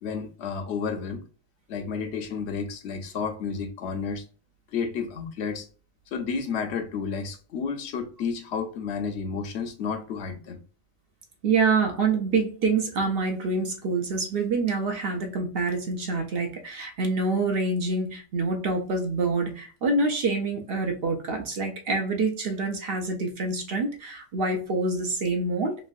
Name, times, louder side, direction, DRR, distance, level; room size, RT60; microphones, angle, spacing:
voice 1, 0.0-1.2 1.7-4.2 4.7-5.7 6.1-10.6, left 5 dB, 70° left, 0.9 m, -31 dB
voice 2, 11.4-25.9, right 3 dB, 65° right, 0.7 m, -26 dB
3.1 x 2.4 x 2.5 m
omnidirectional pair, 1.2 m